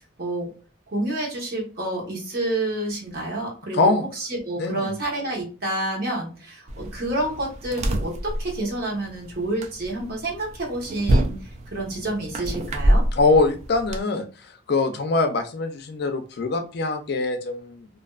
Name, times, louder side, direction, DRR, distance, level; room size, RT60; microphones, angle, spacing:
voice 1, 0.2-0.5 0.9-11.4 11.7-13.0, right 1 dB, 50° right, -2 dB, 1.0 m, -29 dB
voice 2, 4.6-4.9 13.1-14.3 14.7-17.9, left 3 dB, 55° left, 7 dB, 0.4 m, -23 dB
sound 1, 6.7-14.0, right 1 dB, 35° right, 0.3 m, -26 dB
2.5 x 2.2 x 2.3 m, 0.36 s
head